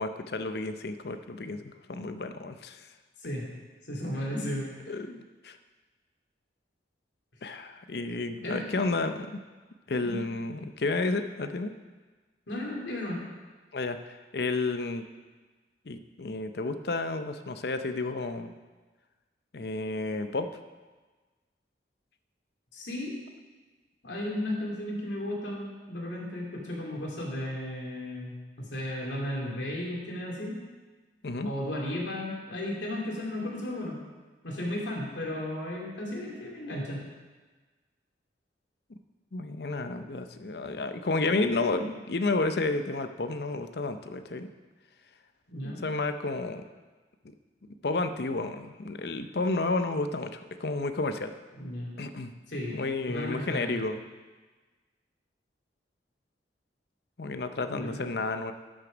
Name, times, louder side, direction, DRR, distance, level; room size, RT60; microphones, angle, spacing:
voice 1, 0.0-2.9 4.9-5.6 7.4-9.4 9.9-11.7 13.7-15.0 15.9-18.5 19.5-20.5 31.2-31.5 39.3-44.5 45.6-46.6 47.8-51.3 52.0-52.3 52.7-54.0 57.2-58.5, left 3 dB, 60° left, 9 dB, 0.6 m, -31 dB
voice 2, 3.9-4.9 8.4-8.6 10.0-10.2 12.5-13.2 22.7-23.2 24.0-30.5 31.4-34.0 34.4-37.0 45.5-45.8 51.5-52.0 52.5-52.8 53.1-53.7 57.7-58.0, left 1 dB, 85° left, -2 dB, 2.6 m, -34 dB
12.0 x 6.4 x 5.1 m, 1.3 s
head